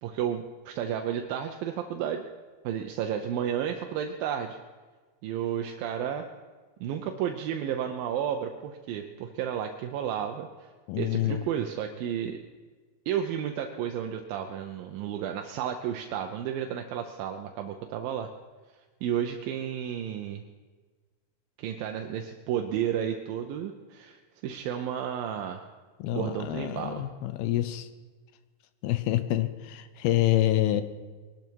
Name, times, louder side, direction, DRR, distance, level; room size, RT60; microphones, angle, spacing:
voice 1, 0.0-2.2 2.6-4.6 5.2-6.3 6.8-10.5 11.0-12.4 13.1-18.3 19.0-20.4 21.6-25.7 26.1-27.1, right 9 dB, 75° right, 4 dB, 2.2 m, -32 dB
voice 2, 10.9-11.4 26.0-27.9 28.8-30.8, left 14 dB, 75° left, 12 dB, 2.5 m, -27 dB
22.0 x 12.0 x 4.7 m, 1.4 s
omnidirectional pair, 4.8 m